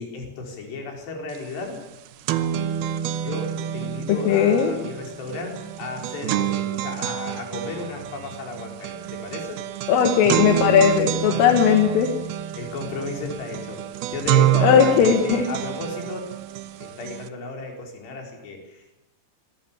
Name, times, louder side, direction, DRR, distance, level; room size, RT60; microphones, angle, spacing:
voice 1, 0.0-1.8 3.1-9.6 11.3-11.8 12.6-16.3 16.8-19.0, left 3 dB, 60° left, 2 dB, 6.4 m, -34 dB
sound 1, 1.3-1.4 1.7-17.3, right 11 dB, 85° right, 2.2 m, -27 dB
voice 2, 4.3-4.7 9.9-12.1 14.6-15.5, left 7 dB, 80° left, 4 dB, 4.2 m, -17 dB
26.0 x 20.0 x 7.3 m, 0.92 s
omnidirectional pair, 5.8 m